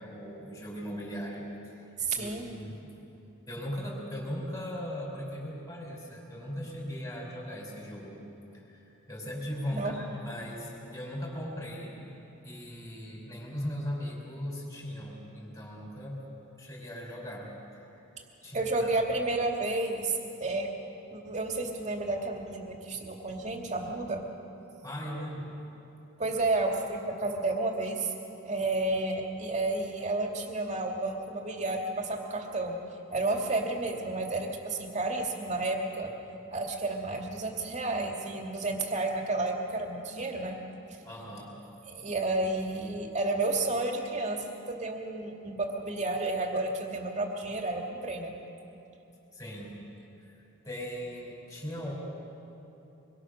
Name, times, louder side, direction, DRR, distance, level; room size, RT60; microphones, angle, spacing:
voice 1, 0.0-1.4 1.7-1.9 2.1-2.8 3.5-8.2 8.5-8.8 9.1-12.0 12.4-16.2 16.6-17.5 17.7-18.0 18.4-18.7 24.8-25.6 41.0-41.5 49.3-49.7 50.2-51.9, equal, 15° left, -2 dB, 4.9 m, -38 dB
voice 2, 2.0-2.5 9.7-9.9 18.5-20.7 21.1-24.2 26.2-28.1 28.4-32.8 33.1-36.1 36.5-40.6 40.9-41.0 41.8-48.3, right 2 dB, 35° right, 1 dB, 2.5 m, -31 dB
25.0 x 22.5 x 6.5 m, 2.9 s
head